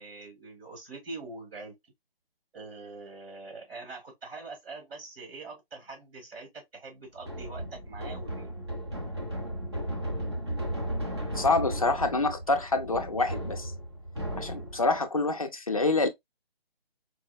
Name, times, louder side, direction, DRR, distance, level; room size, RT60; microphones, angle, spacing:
voice 1, 0.0-1.7 2.5-8.5, right 3 dB, 80° right, 1.4 m, -43 dB
sound 1, 7.2-15.0, equal, 25° right, 0.5 m, -35 dB
voice 2, 11.3-13.7 14.4-16.1, left 3 dB, 35° left, 0.4 m, -26 dB
4.7 x 2.0 x 2.2 m
hypercardioid pair, 170°, 30 cm